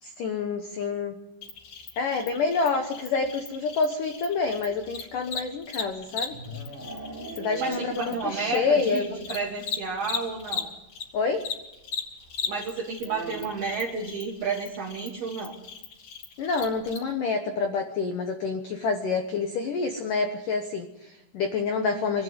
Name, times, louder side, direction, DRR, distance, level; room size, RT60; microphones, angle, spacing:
voice 1, 0.0-1.2 2.0-6.4 7.4-9.2 11.1-11.4 16.4-22.2, left 4 dB, 85° left, 5 dB, 1.8 m, -27 dB
Cricket, 1.4-11.0 11.3-17.0, left 6 dB, 45° left, 3.9 m, -37 dB
sound 1, 5.7-8.8 9.1-9.2 9.5-9.6 9.8-9.9 11.2-11.3 13.0-13.8, right 1 dB, 20° right, 2.5 m, -39 dB
voice 2, 7.6-10.7 12.5-15.5, right 4 dB, 60° right, -1 dB, 3.1 m, -31 dB
23.5 x 12.5 x 9.5 m, 0.93 s
omnidirectional pair, 5.8 m